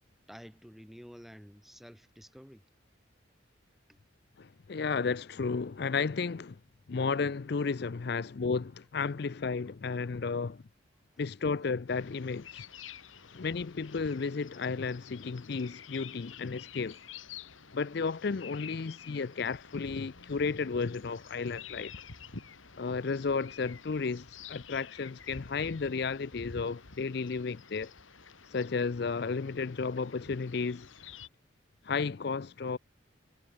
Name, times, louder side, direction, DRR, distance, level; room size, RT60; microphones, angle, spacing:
voice 1, 0.3-2.7 3.9-4.0 13.0-13.3, equal, ahead, 3.0 m, -51 dB
voice 2, 4.4-6.6 6.9-10.6 11.2-12.7 13.3-17.0 17.7-21.9 22.8-27.9 28.5-30.9 31.8-32.8, left 4 dB, 55° left, 0.5 m, -33 dB
sound 1, 11.9-31.3, left 6 dB, 85° left, 2.1 m, -50 dB
head